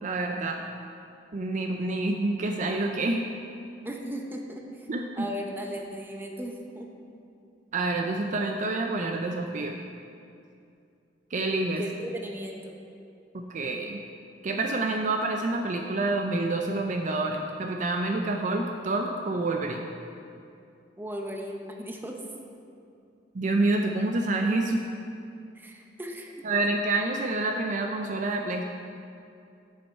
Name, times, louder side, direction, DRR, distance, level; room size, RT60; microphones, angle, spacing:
voice 1, 0.0-0.6 1.3-3.2 4.9-5.3 7.7-9.8 11.3-11.8 13.3-14.0 14.4-19.9 23.3-24.8 26.4-28.6, right 2 dB, 45° right, 3 dB, 0.5 m, -28 dB
voice 2, 3.8-4.9 5.2-7.0 11.8-12.7 21.0-22.2 25.6-26.3, equal, 10° right, 1 dB, 0.8 m, -37 dB
10.0 x 5.4 x 4.5 m, 2.5 s
head